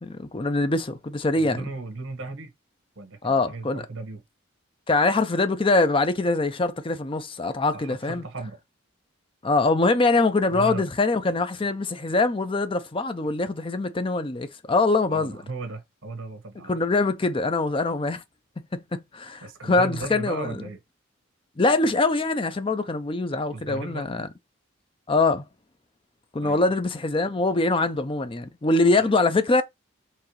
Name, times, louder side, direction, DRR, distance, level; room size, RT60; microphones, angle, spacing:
voice 1, 0.0-1.6 3.2-3.8 4.9-8.2 9.4-15.4 16.7-18.2 18.7-20.6 21.6-24.3 25.1-25.4 26.3-29.6, left 3 dB, 25° left, 0.6 m, -23 dB
voice 2, 1.3-2.5 2.9-4.2 7.7-8.6 10.5-10.8 15.1-16.8 19.4-20.8 23.5-24.2 26.4-26.6 28.9-29.1, right 3 dB, 80° right, 1.4 m, -36 dB
4.7 x 3.2 x 3.1 m
head